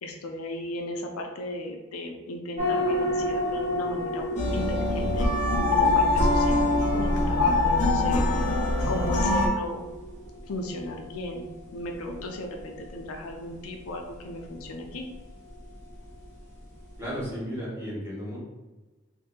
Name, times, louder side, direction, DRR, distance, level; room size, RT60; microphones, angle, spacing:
voice 1, 0.0-5.3 5.7-8.3 8.9-9.9 10.5-15.1, left 1 dB, 85° left, 3 dB, 0.5 m, -36 dB
sound 1, 2.6-17.4, left 1 dB, 35° right, 1.0 m, -35 dB
sound 2, 4.4-9.5, left 2 dB, 35° left, 0.8 m, -23 dB
voice 2, 17.0-18.4, equal, 10° right, -8 dB, 1.2 m, -34 dB
2.7 x 2.7 x 3.7 m, 1.2 s
head